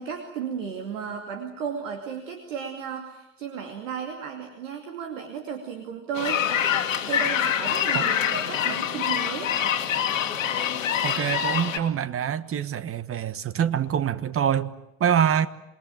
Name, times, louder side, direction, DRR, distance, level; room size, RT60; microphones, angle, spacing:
voice 1, 0.0-6.7 7.1-9.7, right 7 dB, 70° right, 2.6 m, -34 dB
sound 1, 6.2-11.8, left 9 dB, 75° left, 2.2 m, -25 dB
voice 2, 11.0-14.7 15.0-15.5, right 8 dB, 35° right, 1.4 m, -25 dB
27.5 x 21.0 x 9.2 m
figure-of-eight pair, 65°, 40 cm